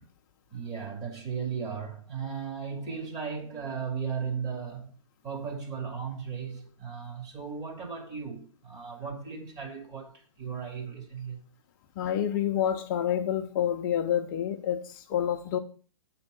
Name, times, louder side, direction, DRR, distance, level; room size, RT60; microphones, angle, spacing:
voice 1, 0.5-5.0 5.2-11.4, right 6 dB, 20° right, 2.5 m, -36 dB
voice 2, 12.0-14.8 15.1-15.6, left 10 dB, 35° left, 0.8 m, -28 dB
8.7 x 4.5 x 6.4 m
hypercardioid pair, 140°, 17 cm